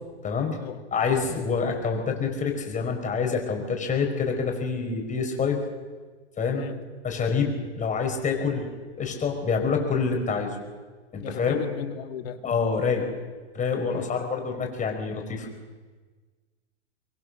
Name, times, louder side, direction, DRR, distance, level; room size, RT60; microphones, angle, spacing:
voice 1, 0.2-0.6 0.9-5.6 6.4-6.7 7.0-8.7 9.0-10.5 11.1-11.6 12.4-13.1 13.5-15.5, left 5 dB, 25° left, 3 dB, 5.5 m, -26 dB
voice 2, 11.2-12.4 13.9-14.1, left 8 dB, 65° left, 8 dB, 2.2 m, -35 dB
23.5 x 22.5 x 6.5 m, 1.4 s
hypercardioid pair, 105°, 33 cm